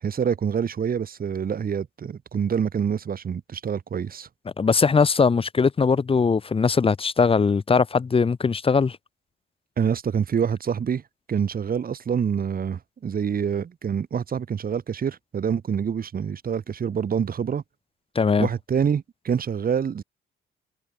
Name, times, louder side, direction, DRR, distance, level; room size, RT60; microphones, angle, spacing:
voice 1, 0.0-4.3 9.8-11.0 11.3-17.6 18.4-20.0, right 7 dB, 45° right, 2.5 m, -26 dB
voice 2, 4.6-9.0 18.1-18.5, left 5 dB, 30° left, 1.0 m, -20 dB
cardioid pair, 90°, 20 cm